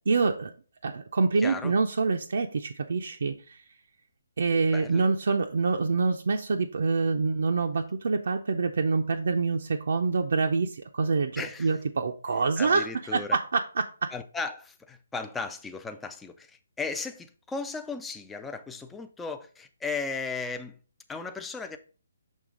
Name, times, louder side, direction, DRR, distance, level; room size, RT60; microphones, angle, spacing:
voice 1, 0.1-0.5 0.8-3.6 4.4-12.9 13.1-13.8, right 4 dB, 60° right, 0.5 m, -26 dB
voice 2, 1.4-1.7 4.7-5.1 11.4-11.7 12.6-13.4 14.1-20.8 21.1-21.8, left 4 dB, 5° left, 0.3 m, -36 dB
6.4 x 3.3 x 5.1 m
hypercardioid pair, 175°, 0 cm